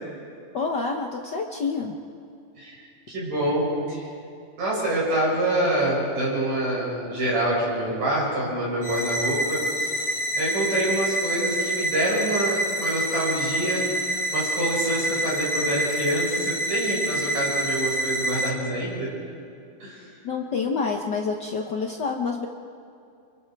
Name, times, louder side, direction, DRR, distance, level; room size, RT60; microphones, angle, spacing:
voice 1, 0.5-1.9 20.2-22.5, left 4 dB, 90° left, 2 dB, 0.9 m, -27 dB
voice 2, 2.6-4.1 4.6-10.1 10.4-19.1 19.8-20.1, right 1 dB, 75° right, -6 dB, 9.0 m, -26 dB
sound 1, 8.8-18.5, right 1 dB, 45° left, 3.0 m, -27 dB
30.0 x 27.5 x 4.7 m, 2.5 s
omnidirectional pair, 3.7 m